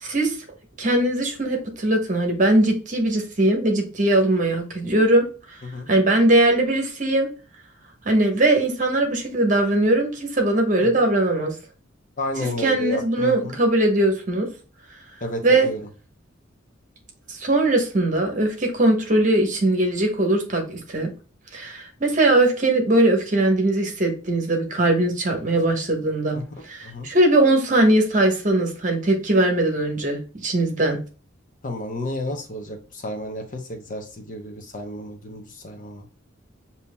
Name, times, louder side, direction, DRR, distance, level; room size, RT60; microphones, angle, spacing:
voice 1, 0.0-0.3 0.8-5.2 5.9-7.3 8.0-11.5 12.6-14.5 15.4-15.7 17.3-21.1 21.5-26.4 26.6-31.0, right 1 dB, 40° right, 2 dB, 1.1 m, -20 dB
voice 2, 12.2-13.6 15.2-15.8 26.3-26.4 26.8-27.1 31.6-36.1, left 1 dB, 40° left, 4 dB, 0.8 m, -31 dB
6.9 x 2.8 x 2.2 m, 0.35 s
head